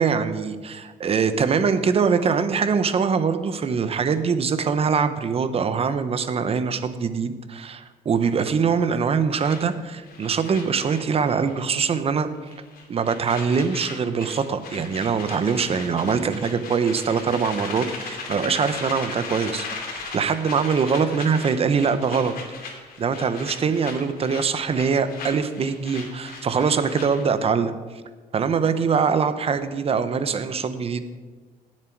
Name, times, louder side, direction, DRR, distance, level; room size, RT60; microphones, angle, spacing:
voice 1, 0.0-12.3 12.9-22.4 23.0-27.7 28.3-31.0, right 6 dB, 35° right, 11 dB, 0.9 m, -23 dB
sound 1, 9.4-11.7 11.9-12.2 12.5-27.4, left 4 dB, 60° left, 2.9 m, -37 dB
18.0 x 7.5 x 4.7 m, 1.4 s
cardioid pair, 110°, 17 cm